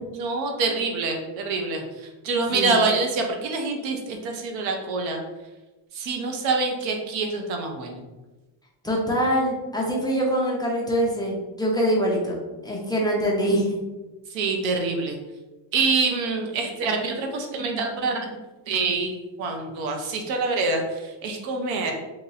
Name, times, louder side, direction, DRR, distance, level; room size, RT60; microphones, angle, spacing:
voice 1, 0.1-5.2 5.9-8.0 14.3-15.2 15.7-18.4 18.7-21.9, right 3 dB, 85° right, 3 dB, 0.9 m, -26 dB
voice 2, 8.8-13.8, equal, 10° left, -3 dB, 0.5 m, -24 dB
3.0 x 2.8 x 3.9 m, 1.1 s
cardioid pair, 145°, 45 cm